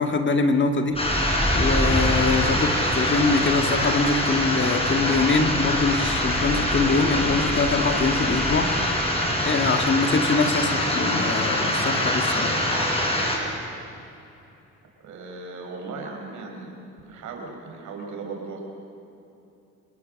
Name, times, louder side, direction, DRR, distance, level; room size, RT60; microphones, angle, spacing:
voice 1, 0.0-8.7 9.4-12.6, left 4 dB, 40° left, 5 dB, 2.0 m, -24 dB
sound 1, 0.9-12.8, equal, ahead, 2.0 m, -32 dB
sound 2, 1.0-13.4, left 1 dB, 20° left, 5.5 m, -24 dB
voice 2, 15.0-16.8 17.0-18.6, right 3 dB, 75° right, 1 dB, 5.3 m, -37 dB
27.0 x 19.5 x 6.6 m, 2.8 s
cardioid pair, 90°, 30 cm